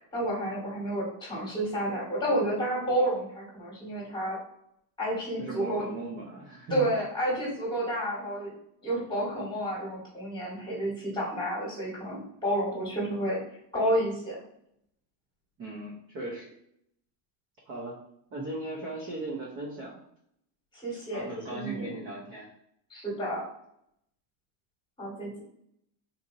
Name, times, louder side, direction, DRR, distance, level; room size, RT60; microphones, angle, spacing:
voice 1, 0.1-4.4 5.0-5.9 6.7-8.5 8.8-13.4 13.7-14.4 20.7-22.0 22.9-23.4 25.0-25.4, right 1 dB, 10° left, -5 dB, 1.4 m, -30 dB
voice 2, 5.4-6.9 15.6-16.5 17.7-18.0 18.3-20.0 21.1-22.5, right 2 dB, 25° right, -3 dB, 0.5 m, -38 dB
4.0 x 2.6 x 2.6 m, 0.73 s
cardioid pair, 155°, 50 cm